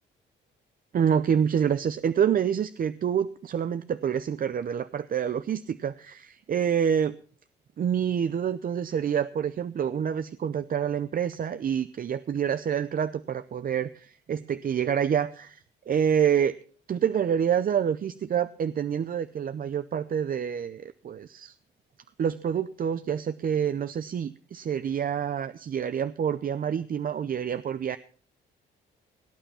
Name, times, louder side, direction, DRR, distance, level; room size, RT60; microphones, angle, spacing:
voice 1, 0.9-7.1 7.8-16.6 16.9-21.5 22.2-28.0, right 8 dB, 45° right, 13 dB, 0.6 m, -27 dB
18.0 x 8.9 x 5.7 m, 0.44 s
cardioid pair, 90°, 20 cm